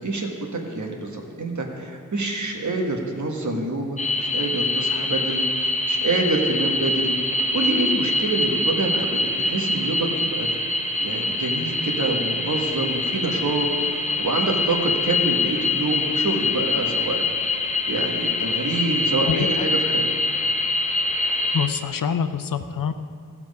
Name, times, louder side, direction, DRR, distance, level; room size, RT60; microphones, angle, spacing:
voice 1, 0.0-7.1 7.5-10.5 11.0-13.7 13.9-17.2 17.5-17.6 17.9-20.1, right 2 dB, 65° right, 1 dB, 1.5 m, -26 dB
sound 1, 4.0-21.7, left 2 dB, 20° left, 0.7 m, -24 dB
voice 2, 19.3-19.7 21.5-22.9, left 7 dB, 85° left, 10 dB, 0.6 m, -25 dB
15.0 x 6.0 x 5.3 m, 2.4 s
wide cardioid pair, 80°, 32 cm